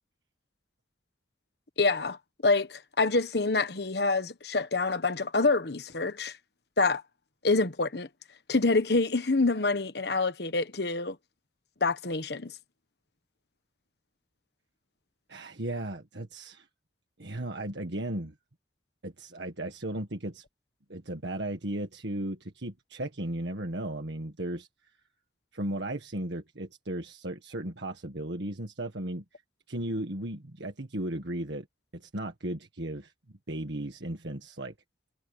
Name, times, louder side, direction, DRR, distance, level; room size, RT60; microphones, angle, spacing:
voice 1, 1.8-2.2 2.4-6.4 6.8-7.0 7.4-8.1 8.5-11.2 11.8-12.5, left 3 dB, 60° left, 1.2 m, -26 dB
voice 2, 15.3-16.7 17.2-18.3 19.0-20.4 20.9-24.7 25.5-29.2 29.7-31.7 31.9-33.1 33.5-34.7, right 1 dB, 75° right, 1.7 m, -35 dB
head